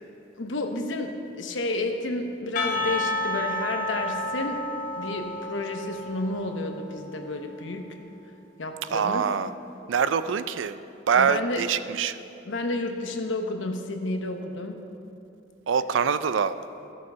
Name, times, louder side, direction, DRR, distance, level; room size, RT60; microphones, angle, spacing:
voice 1, 0.4-4.7 5.0-8.0 8.6-9.3 11.1-11.6 12.4-14.8, left 2 dB, 75° left, 5 dB, 0.9 m, -31 dB
Percussion / Church bell, 2.6-7.1, left 1 dB, 45° left, 1.0 m, -31 dB
voice 2, 8.9-9.5 9.9-10.8 11.1-12.2 15.7-16.5, right 6 dB, 80° right, 13 dB, 0.4 m, -24 dB
13.5 x 6.4 x 5.6 m, 2.8 s
head